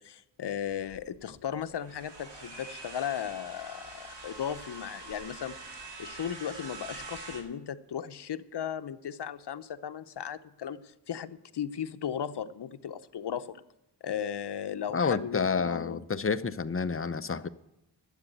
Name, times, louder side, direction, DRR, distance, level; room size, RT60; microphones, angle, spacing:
voice 1, 0.0-5.6 6.0-13.6 14.0-16.0, left 9 dB, 70° left, 0.8 m, -36 dB
sound 1, 0.7-7.4, right 3 dB, 75° right, 2.6 m, -45 dB
voice 2, 14.9-17.5, left 5 dB, 30° left, 0.6 m, -29 dB
12.0 x 8.2 x 9.0 m
wide cardioid pair, 75°, 42 cm